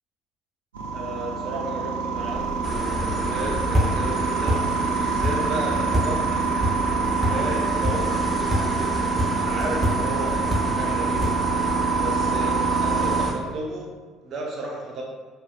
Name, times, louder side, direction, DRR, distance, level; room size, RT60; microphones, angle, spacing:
sound 1, 0.7-13.3, right 5 dB, 80° right, 0.4 m, -26 dB
voice 1, 0.9-6.5 7.3-10.4 10.7-11.3 12.0-13.9 14.2-15.0, right 2 dB, 45° right, -1 dB, 0.8 m, -33 dB
sound 2, 2.2-11.7, equal, 5° right, 1.1 m, -29 dB
sound 3, 2.6-13.3, left 2 dB, 20° left, 0.5 m, -31 dB
4.9 x 2.2 x 2.3 m, 1.4 s
figure-of-eight pair, 55°, 0 cm